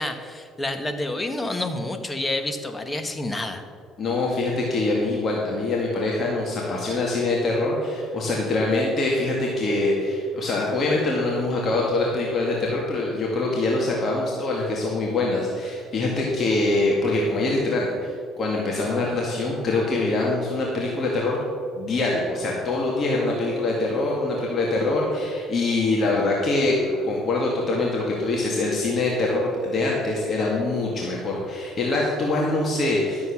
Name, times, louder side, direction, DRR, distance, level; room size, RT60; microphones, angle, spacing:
voice 1, 0.0-3.6, left 2 dB, 15° left, 7 dB, 1.3 m, -28 dB
voice 2, 4.0-18.1 18.4-21.4 21.8-33.3, left 2 dB, 45° left, -3 dB, 2.1 m, -24 dB
12.0 x 7.7 x 6.0 m, 2.2 s
supercardioid pair, 90°, 0 cm